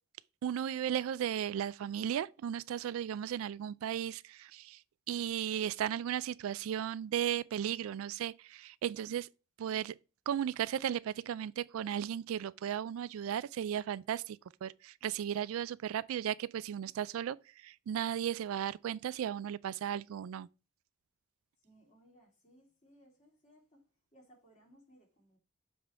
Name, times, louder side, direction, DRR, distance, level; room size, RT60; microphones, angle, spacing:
voice 1, 0.4-4.8 5.1-9.3 9.6-9.9 10.3-20.5, right 9 dB, 80° right, 0.3 m, -35 dB
voice 2, 21.6-25.4, equal, 35° left, 3.0 m, -64 dB
7.3 x 3.6 x 4.5 m
head